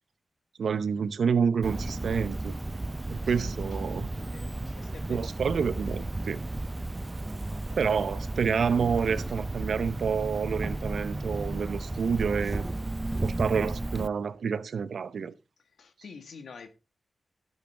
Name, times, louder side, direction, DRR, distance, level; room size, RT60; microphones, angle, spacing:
voice 1, 0.6-2.5 3.1-4.1 5.1-6.4 7.8-12.7 13.2-15.3, right 6 dB, 80° right, 0.7 m, -28 dB
Cricket, 1.6-14.1, right 2 dB, 25° right, 0.5 m, -33 dB
voice 2, 4.1-5.3 15.8-16.7, left 5 dB, 80° left, 1.6 m, -48 dB
12.0 x 8.3 x 3.4 m
cardioid pair, 70°, 0 cm